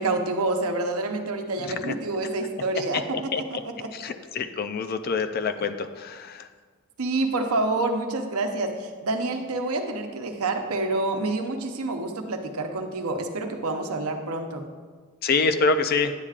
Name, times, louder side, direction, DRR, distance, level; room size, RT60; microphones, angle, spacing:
voice 1, 0.0-3.9 7.0-14.6, right 2 dB, 80° right, 4 dB, 0.8 m, -28 dB
voice 2, 1.6-1.9 2.9-3.4 3.9-6.5 15.2-16.1, left 4 dB, 45° left, 8 dB, 0.4 m, -26 dB
9.7 x 8.7 x 2.4 m, 1.5 s
head